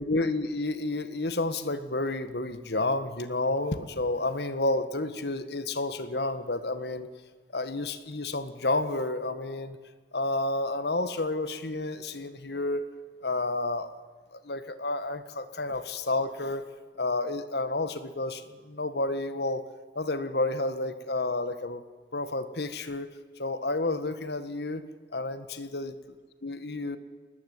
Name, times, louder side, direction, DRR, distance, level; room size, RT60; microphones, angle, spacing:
voice 1, 0.0-7.1 7.5-9.8 10.1-12.8 13.2-13.9 14.3-16.7 17.0-19.6 19.9-21.8 22.1-23.1 23.4-25.9 26.4-27.0, left 2 dB, 65° left, 12 dB, 1.7 m, -30 dB
21.0 x 19.0 x 9.6 m, 1.5 s
head